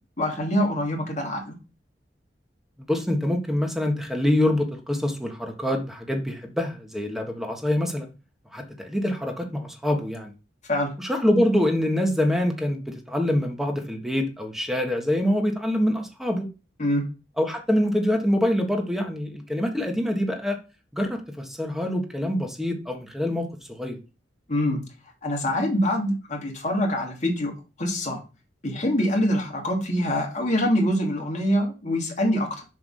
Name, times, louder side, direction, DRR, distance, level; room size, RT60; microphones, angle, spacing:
voice 1, 0.2-1.6 10.7-10.9 16.8-17.0 24.5-24.8 25.2-27.5 27.8-28.2 28.6-32.7, equal, 40° left, 1 dB, 2.7 m, -24 dB
voice 2, 2.8-8.1 8.5-10.3 11.0-16.5 17.4-20.6 20.9-24.0, left 1 dB, ahead, 3 dB, 1.6 m, -25 dB
7.5 x 3.7 x 6.4 m, 0.31 s
head